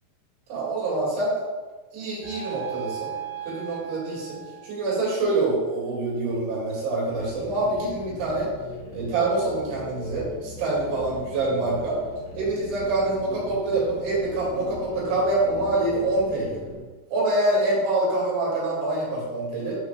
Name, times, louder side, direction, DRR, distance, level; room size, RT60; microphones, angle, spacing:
voice 1, 0.5-1.3 1.9-3.1 3.4-8.5 8.9-12.0 12.3-16.6 17.1-19.8, right 2 dB, 90° right, -5 dB, 4.6 m, -25 dB
sound 1, 2.2-5.4, right 9 dB, 45° left, 2.0 m, -37 dB
sound 2, 7.1-16.8, left 2 dB, 80° left, 4.0 m, -39 dB
10.5 x 4.8 x 2.3 m, 1.3 s
omnidirectional pair, 5.2 m